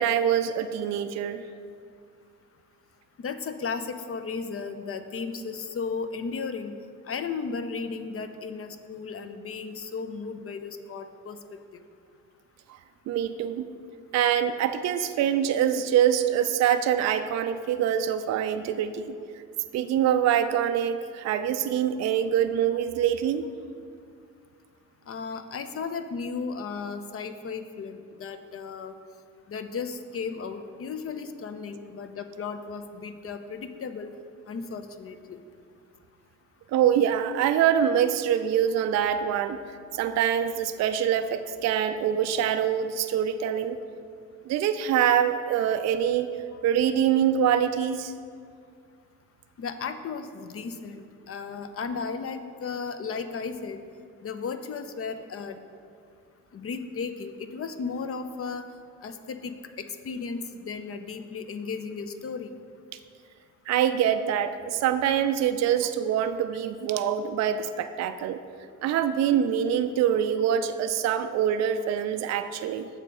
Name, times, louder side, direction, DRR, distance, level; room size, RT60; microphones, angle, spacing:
voice 1, 0.0-1.4 13.1-13.7 14.1-19.1 19.7-23.5 36.7-39.6 39.9-43.8 44.5-46.3 46.6-48.1 63.7-68.4 68.8-72.9, right 9 dB, 45° right, 9 dB, 0.4 m, -24 dB
voice 2, 3.2-6.7 7.1-11.4 25.1-28.9 29.5-34.1 34.5-35.4 46.5-46.6 49.6-53.8 54.2-55.6 56.5-58.6 59.0-62.5, left 5 dB, 35° left, 9 dB, 0.5 m, -35 dB
7.3 x 3.8 x 5.2 m, 2.3 s
hypercardioid pair, 40°, 41 cm